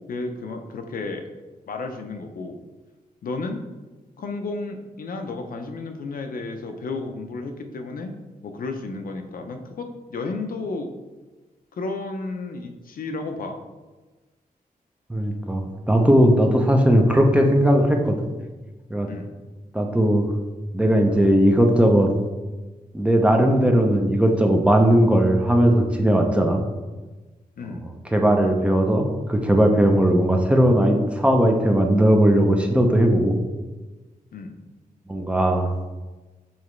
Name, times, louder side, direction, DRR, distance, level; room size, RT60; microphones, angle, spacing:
voice 1, 0.1-1.3 1.7-2.6 3.2-3.6 4.2-8.1 8.4-10.9 11.8-13.6 19.1-19.3 27.6-27.9 34.3-34.6, left 3 dB, 70° left, 5 dB, 0.7 m, -32 dB
voice 2, 15.1-18.3 18.9-19.1 19.7-20.3 20.7-22.1 22.9-26.6 28.1-33.4 35.1-35.7, right 1 dB, 10° right, 2 dB, 0.6 m, -18 dB
7.2 x 4.1 x 3.2 m, 1.2 s
wide cardioid pair, 135°, 15 cm